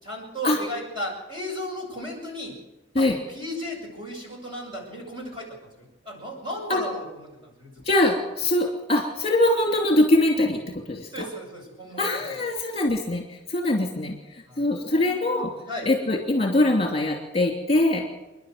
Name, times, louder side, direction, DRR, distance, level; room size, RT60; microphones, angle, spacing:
voice 1, 0.0-2.6 2.9-7.8 11.1-12.4 14.5-15.9, equal, 25° right, 0 dB, 6.9 m, -36 dB
voice 2, 7.8-11.2 12.0-14.2 14.6-15.5 15.8-18.0, left 1 dB, 30° left, 0 dB, 2.9 m, -23 dB
29.0 x 11.5 x 7.9 m, 1.0 s
head